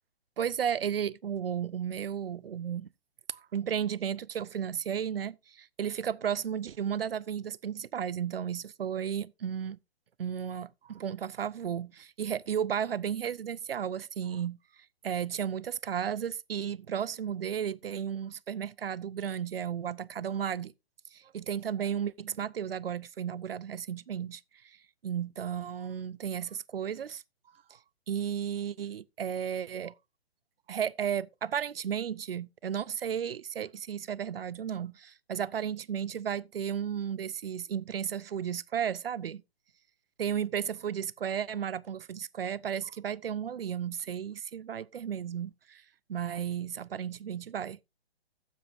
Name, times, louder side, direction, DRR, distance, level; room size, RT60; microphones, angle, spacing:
voice 1, 0.4-2.9 3.3-9.8 10.2-14.6 15.0-20.7 21.1-24.8 25.0-27.2 27.7-27.8 28.1-29.9 30.7-39.4 40.2-45.8 46.1-47.8, right 8 dB, 65° right, 0.5 m, -34 dB
15.5 x 7.4 x 2.6 m
figure-of-eight pair, 130°, 31 cm